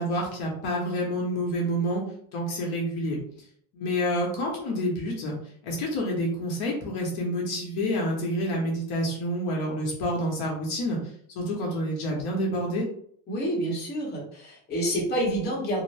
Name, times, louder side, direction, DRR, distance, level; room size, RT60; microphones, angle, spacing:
voice 1, 0.0-2.0 2.3-3.2 3.7-5.3 5.6-11.0 11.4-12.9, equal, 50° left, -1 dB, 0.8 m, -28 dB
voice 2, 13.3-15.8, right 1 dB, 20° left, -4 dB, 0.9 m, -28 dB
2.6 x 2.1 x 3.2 m, 0.63 s
cardioid pair, 150°, 48 cm